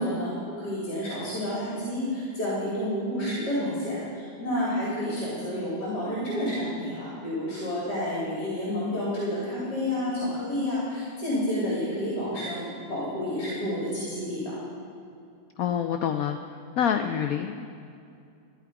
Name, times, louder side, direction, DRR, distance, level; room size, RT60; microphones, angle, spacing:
voice 1, 0.0-14.4, left 1 dB, 60° left, -7 dB, 3.4 m, -30 dB
voice 2, 15.6-16.4 16.8-17.7, left 8 dB, 80° left, 7 dB, 0.8 m, -26 dB
14.0 x 10.5 x 4.8 m, 2.5 s
omnidirectional pair, 2.1 m